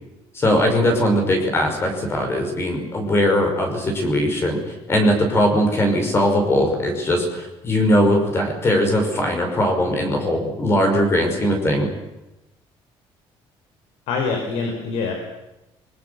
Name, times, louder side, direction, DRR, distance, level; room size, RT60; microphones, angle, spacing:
voice 1, 0.3-11.9, equal, 25° left, 3 dB, 5.6 m, -20 dB
voice 2, 14.1-15.1, left 4 dB, 80° left, 3 dB, 5.2 m, -24 dB
29.0 x 22.5 x 7.0 m, 0.97 s
cardioid pair, 170°, 10 cm